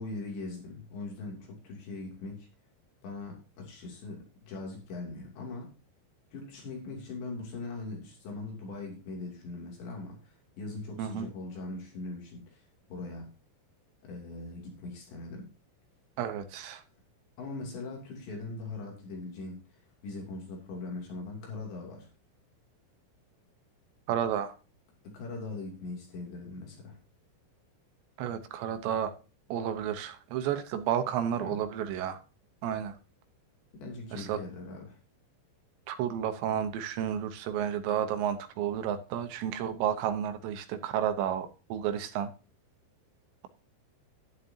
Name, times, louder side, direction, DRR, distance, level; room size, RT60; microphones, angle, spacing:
voice 1, 0.0-2.5 3.0-5.7 6.3-13.3 14.0-15.5 17.4-22.1 25.0-27.0 31.3-31.6 33.7-35.0, left 3 dB, 65° left, 0 dB, 4.9 m, -41 dB
voice 2, 11.0-11.3 16.2-16.8 24.1-24.5 28.2-29.1 29.5-32.2 32.6-33.0 34.1-34.4 35.9-42.3, right 9 dB, 75° right, 9 dB, 3.0 m, -31 dB
11.5 x 11.5 x 2.8 m, 0.33 s
omnidirectional pair, 5.4 m